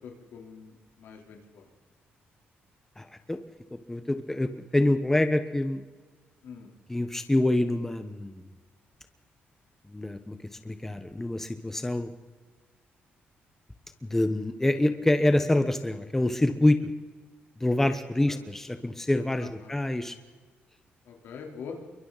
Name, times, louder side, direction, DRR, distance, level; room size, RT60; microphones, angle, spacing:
voice 1, 0.0-1.7 6.4-6.7 18.3-18.4 19.4-19.8 21.1-21.8, left 6 dB, 85° left, 2 dB, 3.9 m, -44 dB
voice 2, 3.0-3.4 3.9-5.8 6.9-8.4 9.9-10.4 10.6-12.1 14.0-16.8 17.6-20.2, left 1 dB, 10° left, 8 dB, 1.3 m, -26 dB
28.0 x 23.5 x 4.2 m, 1.4 s
cardioid pair, 125°, 4 cm